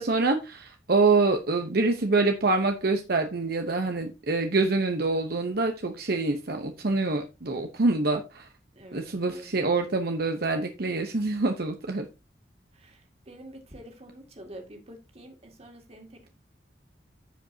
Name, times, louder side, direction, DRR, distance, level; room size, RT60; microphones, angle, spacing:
voice 1, 0.0-8.5 8.9-12.0, right 3 dB, 60° right, 0.9 m, -26 dB
voice 2, 8.8-9.7 12.7-16.3, right 1 dB, 35° right, 2.3 m, -47 dB
14.5 x 5.2 x 2.8 m
head